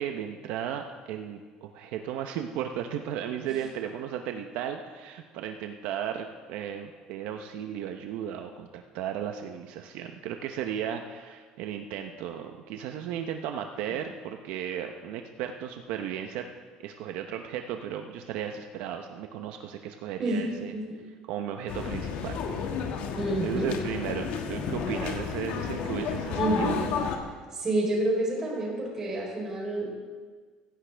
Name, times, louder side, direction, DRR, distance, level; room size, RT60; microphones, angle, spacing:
voice 1, 0.0-16.5 16.8-20.7 21.3-22.4 23.4-26.8, right 9 dB, 70° right, 5 dB, 0.8 m, -35 dB
voice 2, 20.2-21.0 23.1-23.7 26.3-26.8 27.5-29.9, right 1 dB, 20° right, -2 dB, 3.9 m, -29 dB
sound 1, 21.7-27.2, left 6 dB, 60° left, 1.5 m, -32 dB
16.5 x 15.0 x 3.4 m, 1.5 s
cardioid pair, 165°, 2 cm